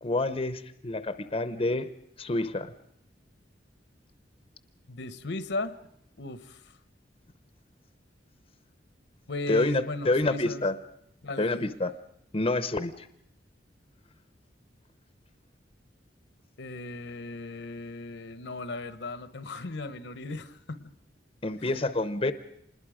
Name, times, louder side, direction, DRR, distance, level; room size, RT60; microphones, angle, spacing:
voice 1, 0.0-1.9 2.2-2.7 9.5-10.8 11.4-11.9 12.3-13.1 21.4-22.3, left 2 dB, 30° left, 11 dB, 0.7 m, -28 dB
voice 2, 4.9-5.8 6.2-6.6 9.3-10.6 11.2-11.7 16.6-20.9 21.6-21.7, left 2 dB, 75° left, 13 dB, 0.9 m, -36 dB
26.0 x 20.5 x 5.0 m, 0.73 s
head